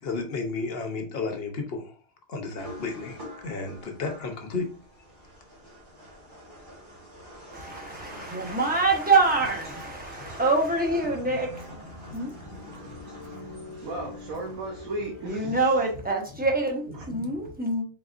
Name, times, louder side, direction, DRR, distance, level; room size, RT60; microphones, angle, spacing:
voice 1, 0.0-2.0 2.3-4.7, left 4 dB, 55° left, 5 dB, 0.9 m, -32 dB
sound 1, 2.6-16.1, left 1 dB, 35° right, 1.5 m, -44 dB
voice 2, 7.5-11.8 12.1-12.6 12.8-12.9 13.4-13.5 15.2-17.9, right 3 dB, 10° right, -1 dB, 0.7 m, -26 dB
voice 3, 13.8-15.6 17.1-17.4, right 2 dB, 85° right, -1 dB, 1.3 m, -35 dB
3.9 x 3.7 x 2.4 m, 0.39 s
omnidirectional pair, 1.4 m